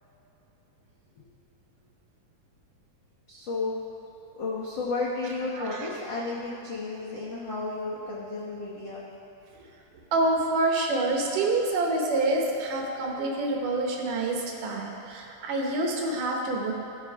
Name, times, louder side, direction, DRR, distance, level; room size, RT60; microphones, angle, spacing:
voice 1, 3.3-3.8 4.3-9.0, left 3 dB, 85° left, -7 dB, 1.0 m, -32 dB
voice 2, 5.5-5.9 10.1-16.7, right 2 dB, 70° right, 0 dB, 2.5 m, -27 dB
16.5 x 5.7 x 4.7 m, 2.9 s
omnidirectional pair, 4.2 m